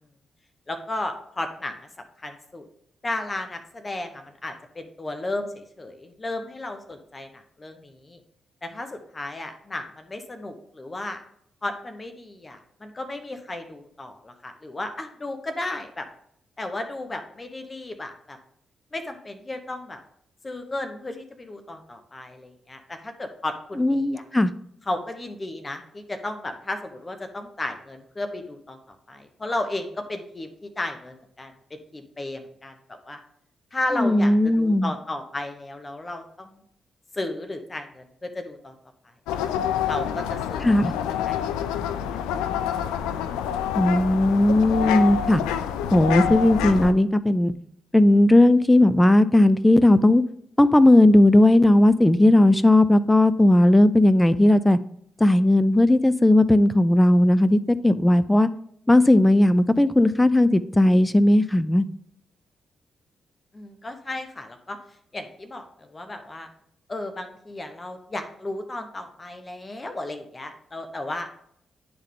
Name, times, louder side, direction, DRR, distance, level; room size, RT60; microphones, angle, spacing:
voice 1, 0.7-1.9 2.2-2.7 3.0-8.2 8.6-11.2 11.6-16.1 16.6-18.4 18.9-20.0 20.4-24.2 24.9-33.2 33.7-36.6 37.1-38.7 39.9-40.9 41.3-41.9 63.5-64.8 65.1-66.5 66.9-71.3, left 2 dB, 30° left, 7 dB, 1.0 m, -34 dB
voice 2, 23.8-24.5 33.9-34.9 40.6-40.9 43.8-45.4 45.9-47.5 47.9-50.2 50.6-54.8 55.2-58.5 58.9-61.8, left 1 dB, 15° left, 16 dB, 0.4 m, -17 dB
sound 1, 39.3-46.9, left 9 dB, 85° left, 0.3 m, -27 dB
10.5 x 3.7 x 3.6 m, 0.70 s
supercardioid pair, 45°, 0 cm